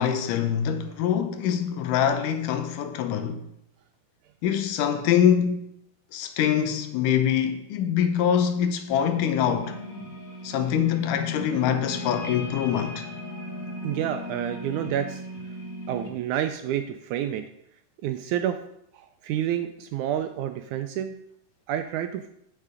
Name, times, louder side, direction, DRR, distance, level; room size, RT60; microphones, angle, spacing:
voice 1, 0.0-3.5 4.4-5.7 6.1-9.8 10.4-13.1, left 9 dB, 80° left, 2.3 m, -24 dB
sound 1, 9.1-16.1, left 2 dB, 35° left, 1.6 m, -36 dB
voice 2, 13.8-15.2 15.9-17.4 18.0-18.6 18.9-21.2 21.7-22.3, right 10 dB, 80° right, 1.8 m, -29 dB
9.2 x 6.7 x 4.9 m
omnidirectional pair, 3.8 m